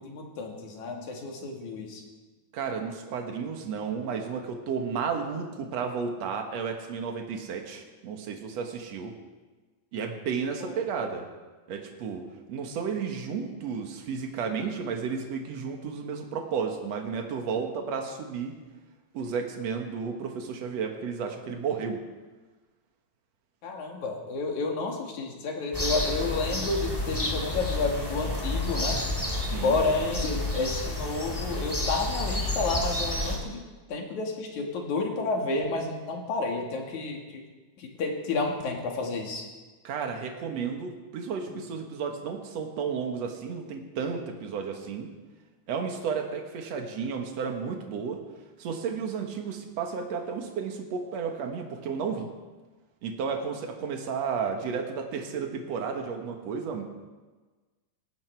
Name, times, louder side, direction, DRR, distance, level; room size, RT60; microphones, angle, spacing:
voice 1, 0.0-2.0 10.6-10.7 23.6-29.0 29.6-33.6 33.9-37.4 37.8-39.4, left 3 dB, 80° left, 1 dB, 3.6 m, -30 dB
voice 2, 2.5-9.1 9.9-11.3 11.7-18.5 19.1-22.0 29.5-29.8 39.8-45.1 45.7-48.2 48.6-52.3 53.0-56.8, right 6 dB, 65° right, 3 dB, 2.7 m, -32 dB
sound 1, 25.7-33.4, left 1 dB, 10° left, 2.3 m, -30 dB
19.0 x 16.0 x 4.7 m, 1.3 s
omnidirectional pair, 3.3 m